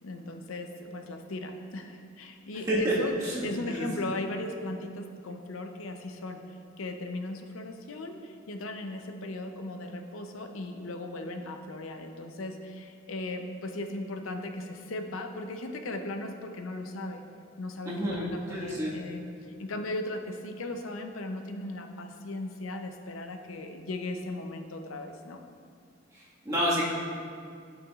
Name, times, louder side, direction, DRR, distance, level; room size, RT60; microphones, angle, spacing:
voice 1, 0.0-3.1 3.4-17.2 17.6-19.2 19.6-25.4, left 2 dB, 85° left, 5 dB, 0.6 m, -37 dB
voice 2, 3.2-3.9 17.8-18.9 26.1-26.8, equal, 20° right, -7 dB, 1.6 m, -30 dB
11.0 x 6.0 x 2.4 m, 2.3 s
head